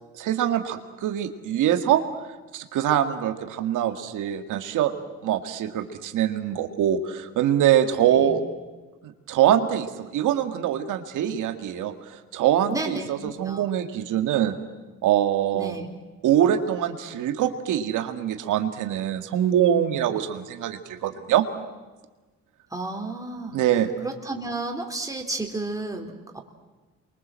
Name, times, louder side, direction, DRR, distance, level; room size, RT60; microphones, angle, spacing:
voice 1, 0.2-2.0 2.5-4.9 5.2-8.4 9.0-14.6 15.0-15.8 16.2-21.5 23.5-23.9, right 10 dB, 85° right, 7 dB, 2.1 m, -24 dB
voice 2, 12.7-13.7 15.5-15.9 22.7-23.6 24.0-26.4, right 2 dB, 10° right, 2 dB, 3.7 m, -32 dB
28.5 x 23.5 x 7.6 m, 1.2 s
cardioid pair, 90°, 30 cm